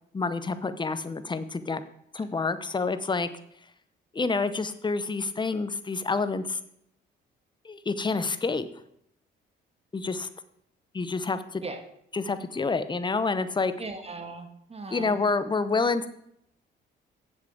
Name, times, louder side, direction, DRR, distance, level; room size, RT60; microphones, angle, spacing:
voice 1, 0.1-1.8 2.1-3.3 4.1-6.6 7.6-8.7 9.9-10.3 10.9-11.6 12.1-13.7 14.9-16.1, left 4 dB, 25° left, 12 dB, 0.9 m, -28 dB
voice 2, 13.8-15.2, right 3 dB, 30° right, 6 dB, 1.6 m, -38 dB
7.5 x 7.2 x 7.6 m, 0.74 s
cardioid pair, 90°, 20 cm